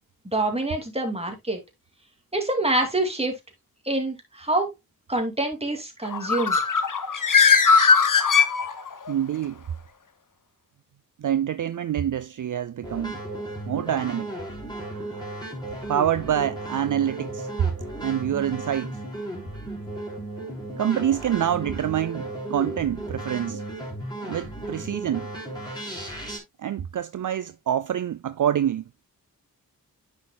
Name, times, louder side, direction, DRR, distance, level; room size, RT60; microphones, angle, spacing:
voice 1, 0.2-1.6 2.3-3.4 3.9-4.7 5.1-6.6, right 2 dB, 15° right, 2.5 m, -26 dB
Bird, 6.0-9.1, left 5 dB, 60° left, 1.0 m, -19 dB
voice 2, 9.1-9.6 11.2-13.2 13.7-14.3 14.9-15.2 15.9-17.5 18.0-19.0 20.8-23.6 24.2-25.3 26.6-28.8, right 10 dB, 60° right, 0.4 m, -26 dB
sound 1, 12.8-26.4, right 1 dB, 10° left, 3.9 m, -35 dB
9.5 x 6.5 x 2.2 m
wide cardioid pair, 60°, 36 cm